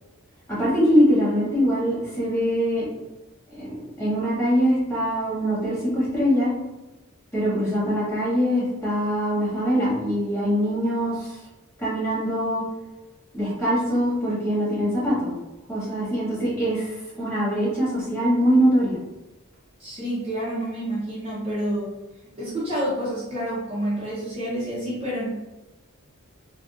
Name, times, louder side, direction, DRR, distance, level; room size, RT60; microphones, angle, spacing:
voice 1, 0.5-2.8 3.5-6.5 7.3-11.4 11.8-12.6 13.3-15.3 15.7-19.0, equal, 10° left, -9 dB, 1.5 m, -23 dB
voice 2, 19.8-21.9 22.4-25.3, equal, 25° right, -8 dB, 0.7 m, -28 dB
3.6 x 2.3 x 2.4 m, 1.1 s
head